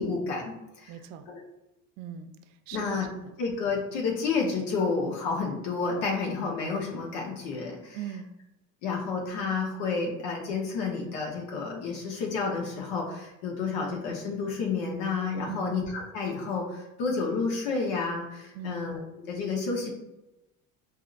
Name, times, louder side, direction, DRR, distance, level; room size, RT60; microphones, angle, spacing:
voice 1, 0.0-0.9 1.3-1.4 2.7-3.1 3.4-8.0 8.8-19.9, left 4 dB, 85° left, -1 dB, 0.9 m, -30 dB
voice 2, 0.9-1.3 2.0-3.0 7.9-8.3 15.5-15.8 18.5-18.9, right 9 dB, 85° right, 9 dB, 0.5 m, -40 dB
5.0 x 2.6 x 2.4 m, 0.97 s
cardioid pair, 145°, 35 cm